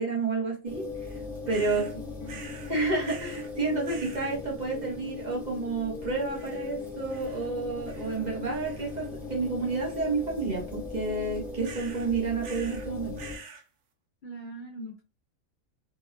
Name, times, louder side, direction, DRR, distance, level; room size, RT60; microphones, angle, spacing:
voice 1, 0.0-2.0 2.7-13.2, right 3 dB, 40° right, -2 dB, 0.8 m, -30 dB
sound 1, 0.6-13.4, left 4 dB, ahead, 0.8 m, -39 dB
sound 2, 1.5-1.9 2.3-2.7 3.0-3.5 3.8-4.3 6.3-6.8 7.1-7.5 7.9-8.3 8.6-9.1 11.6-12.1 12.4-12.9 13.2-13.6, right 5 dB, 90° right, 1.0 m, -46 dB
voice 2, 14.2-15.0, right 1 dB, 65° left, 1 dB, 0.5 m, -42 dB
2.8 x 2.2 x 2.5 m, 0.31 s
omnidirectional pair, 1.3 m